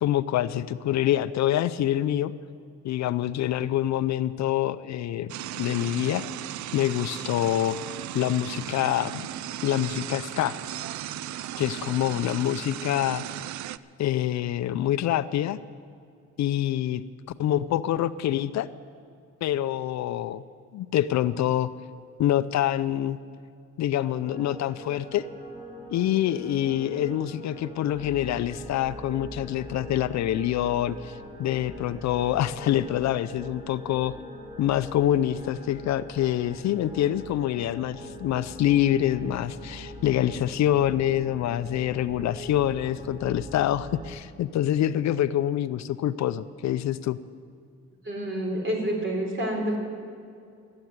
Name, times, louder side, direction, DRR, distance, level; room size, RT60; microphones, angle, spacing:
voice 1, 0.0-2.3 2.8-6.2 6.7-7.8 8.1-9.3 9.6-10.6 11.6-13.2 14.0-15.6 16.4-17.0 17.4-18.7 19.4-20.4 20.7-21.7 22.2-23.2 23.8-25.3 25.9-34.1 34.6-47.2, left 12 dB, 65° left, 14 dB, 0.5 m, -26 dB
sound 1, 5.3-13.8, right 12 dB, 70° right, 0.5 m, -36 dB
sound 2, 24.2-44.1, equal, 20° right, 2.6 m, -42 dB
voice 2, 48.0-49.8, right 1 dB, 40° right, 1 dB, 3.7 m, -28 dB
13.0 x 8.8 x 9.4 m, 2.4 s
cardioid pair, 90°, 30 cm